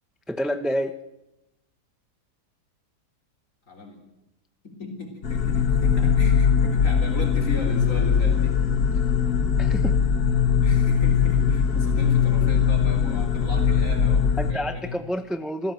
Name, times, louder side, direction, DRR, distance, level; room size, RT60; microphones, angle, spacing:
voice 1, 0.3-1.0 9.6-10.0 14.4-15.7, equal, ahead, 9 dB, 0.7 m, -28 dB
voice 2, 3.7-4.0 4.6-8.6 10.6-15.0, left 2 dB, 50° left, 1 dB, 3.7 m, -36 dB
sound 1, 5.2-14.5, left 7 dB, 65° left, 2.0 m, -21 dB
26.5 x 15.0 x 8.0 m, 0.92 s
omnidirectional pair, 1.8 m